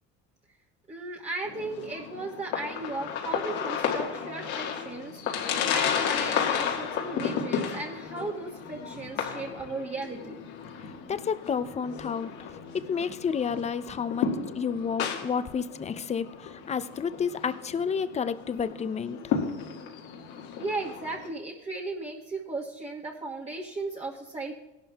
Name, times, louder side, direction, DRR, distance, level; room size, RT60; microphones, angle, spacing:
voice 1, 0.9-10.4 20.6-24.5, right 3 dB, 20° right, -4 dB, 1.4 m, -36 dB
sound 1, 1.5-21.3, left 7 dB, 75° left, 2.0 m, -33 dB
voice 2, 11.1-12.5 12.8-14.3 14.6-19.4, left 6 dB, 20° left, 13 dB, 0.5 m, -30 dB
17.5 x 11.5 x 2.4 m, 0.96 s
supercardioid pair, 95°, 30 cm